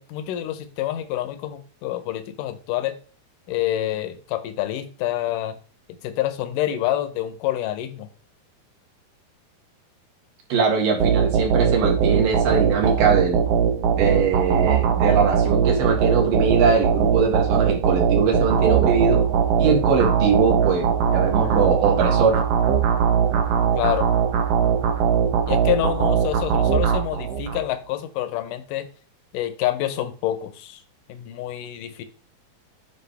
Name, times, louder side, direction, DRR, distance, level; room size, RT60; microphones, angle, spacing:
voice 1, 0.0-3.0 3.5-5.6 6.0-8.1 23.7-24.1 25.5-28.9 29.3-30.8 31.1-32.0, left 13 dB, 75° left, 10 dB, 2.2 m, -27 dB
voice 2, 10.5-13.4 14.0-19.2 19.6-22.4, right 5 dB, 65° right, 0 dB, 3.4 m, -22 dB
sound 1, 11.0-27.6, right 7 dB, 90° right, 1.3 m, -20 dB
9.6 x 4.9 x 3.4 m, 0.39 s
omnidirectional pair, 4.3 m